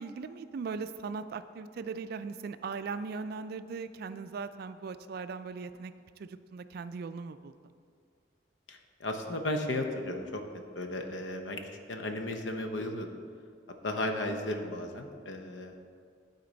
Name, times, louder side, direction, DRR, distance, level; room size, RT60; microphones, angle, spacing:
voice 1, 0.0-5.9 6.2-7.5 14.5-14.7, right 5 dB, 55° right, 12 dB, 0.3 m, -39 dB
voice 2, 8.7-10.4 10.8-11.6 11.9-13.1 13.8-15.7, left 1 dB, 80° left, 5 dB, 0.8 m, -34 dB
12.5 x 4.3 x 3.9 m, 2.2 s
head